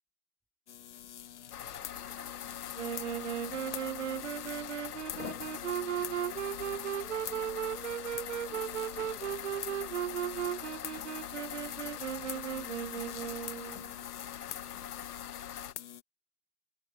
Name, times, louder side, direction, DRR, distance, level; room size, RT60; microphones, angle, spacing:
sound 1, 0.7-16.0, left 10 dB, 50° left, 1.3 m, -46 dB
sound 2, 1.5-15.7, left 10 dB, 80° left, 0.9 m, -43 dB
voice 1, 1.9-3.9 4.2-7.7 8.5-11.0 11.7-13.6, right 1 dB, ahead, 1.8 m, -64 dB
Wind instrument woodwind instrument, 2.8-13.9, right 10 dB, 50° right, 0.5 m, -36 dB
open air
hypercardioid pair, 165°, 46 cm